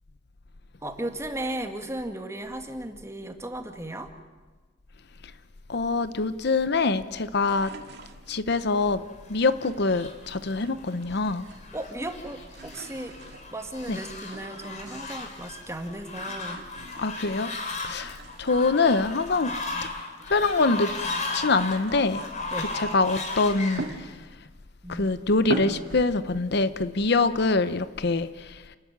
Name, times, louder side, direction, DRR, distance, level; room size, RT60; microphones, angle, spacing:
voice 1, 0.8-4.1 11.7-13.2 13.5-16.6 22.5-22.7 24.8-25.2, right 1 dB, 15° right, 5 dB, 1.8 m, -35 dB
voice 2, 5.7-7.7 8.3-9.0 9.3-11.4 13.9-14.0 17.0-17.5 17.8-19.5 20.3-20.9 21.3-22.2 22.7-24.2 24.9-28.8, left 3 dB, 60° left, 13 dB, 0.8 m, -24 dB
sound 1, 7.4-8.7 9.6-11.1 11.3-12.0 12.3-15.4 16.0-17.6 18.0-20.6 21.0-24.5 25.0-25.1 25.4-26.1, right 2 dB, 60° right, 2.1 m, -41 dB
Fowl, 9.0-23.9, left 3 dB, 40° left, 3.2 m, -36 dB
29.0 x 13.0 x 9.4 m, 1.3 s
head